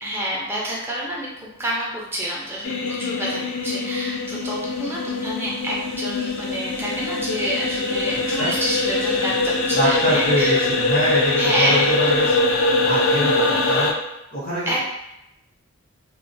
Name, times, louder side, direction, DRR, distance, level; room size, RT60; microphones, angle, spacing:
voice 1, 0.0-10.7 11.4-12.2 14.7-14.8, right 1 dB, 10° right, -5 dB, 0.5 m, -27 dB
sound 1, 2.6-13.9, left 3 dB, 75° left, 0.3 m, -22 dB
voice 2, 9.7-12.3 12.7-13.9 14.3-14.8, right 1 dB, 50° left, -12 dB, 0.9 m, -24 dB
2.2 x 2.2 x 2.6 m, 0.85 s
head